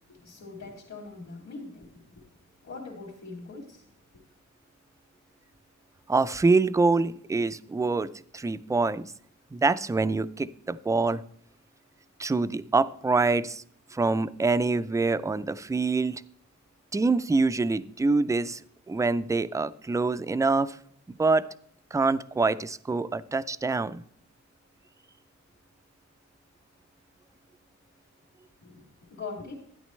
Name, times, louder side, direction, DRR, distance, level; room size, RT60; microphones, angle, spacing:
voice 1, 0.1-1.9 2.1-2.2 2.6-3.8 28.6-28.8 29.1-29.7, left 3 dB, 60° left, -6 dB, 2.8 m, -41 dB
voice 2, 6.1-9.1 9.5-11.2 12.2-13.6 13.9-16.2 16.9-18.6 18.9-20.8 21.1-21.5 21.9-24.0, right 3 dB, 10° right, 15 dB, 0.3 m, -25 dB
12.0 x 10.0 x 3.1 m, 0.64 s
wide cardioid pair, 120°, 30 cm